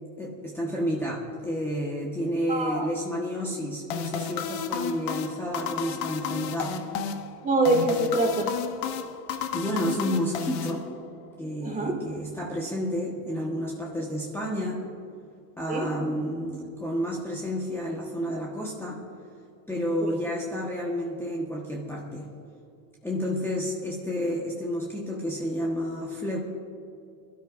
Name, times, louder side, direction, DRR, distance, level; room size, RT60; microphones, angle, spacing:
voice 1, 0.2-6.8 9.5-10.8 11.4-14.8 15.6-19.0 19.7-22.3 23.0-26.4, equal, 5° left, -3 dB, 1.4 m, -30 dB
voice 2, 2.5-2.9 7.4-8.5 11.6-11.9 15.7-15.8 20.0-20.1, right 2 dB, 20° right, 1 dB, 2.4 m, -24 dB
sound 1, 3.9-11.3, left 7 dB, 60° left, 1.2 m, -33 dB
22.0 x 13.0 x 2.6 m, 2.6 s
supercardioid pair, 130°, 42 cm